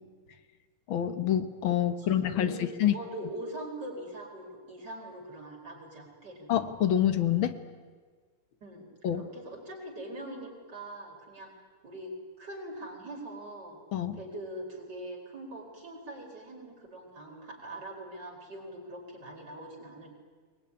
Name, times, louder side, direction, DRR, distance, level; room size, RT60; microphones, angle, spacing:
voice 1, 0.9-2.9 6.5-7.6 9.0-9.3 13.9-14.2, left 10 dB, 70° left, 9 dB, 1.9 m, -27 dB
voice 2, 2.0-6.5 8.6-11.5 11.8-12.1 12.4-13.8 14.2-20.1, right 1 dB, 50° right, 0 dB, 5.4 m, -42 dB
22.5 x 20.5 x 9.8 m, 1.5 s
omnidirectional pair, 2.3 m